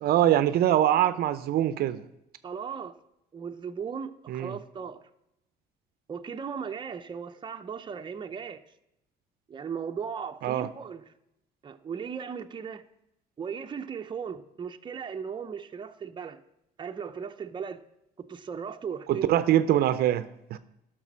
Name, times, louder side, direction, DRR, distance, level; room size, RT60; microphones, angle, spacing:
voice 1, 0.0-2.0 4.3-4.6 10.4-10.7 19.1-20.6, right 12 dB, 65° right, 0.6 m, -23 dB
voice 2, 2.4-3.0 3.3-5.0 6.1-8.6 9.5-11.0 11.6-12.8 13.4-16.4 16.8-17.8 18.2-19.3, right 6 dB, 30° right, 0.7 m, -37 dB
12.0 x 6.1 x 6.2 m
cardioid pair, 110°, 17 cm